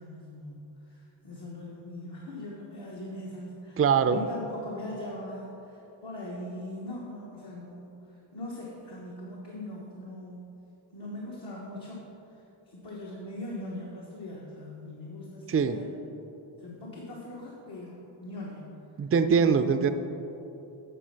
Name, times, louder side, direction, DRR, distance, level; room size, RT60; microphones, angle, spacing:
voice 1, 0.0-10.5 10.9-12.0 12.3-15.9 16.6-18.8 19.4-19.9, left 1 dB, 60° left, -4 dB, 1.3 m, -41 dB
voice 2, 3.8-4.2 15.5-15.8 19.0-19.9, right 6 dB, 30° right, 9 dB, 0.4 m, -22 dB
9.0 x 4.4 x 5.7 m, 2.9 s
cardioid pair, 65°, 47 cm